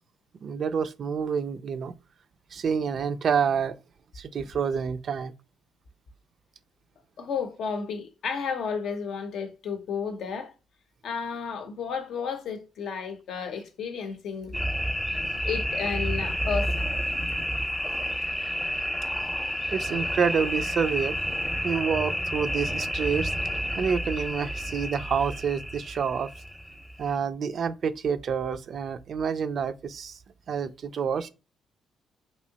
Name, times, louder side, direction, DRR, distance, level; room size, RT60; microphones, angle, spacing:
voice 1, 0.4-1.9 2.5-3.8 4.2-5.3 17.8-17.9 19.7-21.2 21.6-23.3 23.8-26.3 27.0-30.2 30.5-31.3, right 6 dB, 55° right, 0.3 m, -28 dB
voice 2, 7.2-10.5 11.0-14.6 15.4-16.9, left 6 dB, 70° left, 0.6 m, -32 dB
sound 1, 14.5-27.1, equal, 10° left, 0.6 m, -30 dB
3.0 x 2.7 x 2.7 m
cardioid pair, 90°, 0 cm